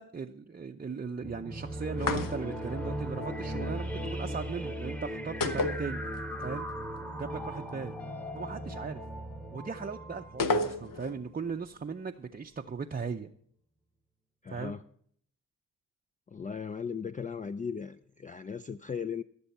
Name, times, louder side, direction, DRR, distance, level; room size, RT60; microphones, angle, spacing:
voice 1, 0.0-6.0 6.4-6.7 7.2-7.9 8.3-9.0 9.5-13.3 14.5-14.8, right 5 dB, 25° right, 3 dB, 0.6 m, -38 dB
sound 1, 1.2-11.4, equal, 5° left, 1.1 m, -38 dB
sound 2, 2.0-2.7 5.4-6.5 6.7-6.8 10.4-11.2, left 3 dB, 65° left, 1.0 m, -31 dB
voice 2, 14.4-14.8 16.3-19.2, left 6 dB, 25° left, 10 dB, 0.4 m, -37 dB
16.0 x 6.9 x 5.5 m, 0.65 s
cardioid pair, 65°, 36 cm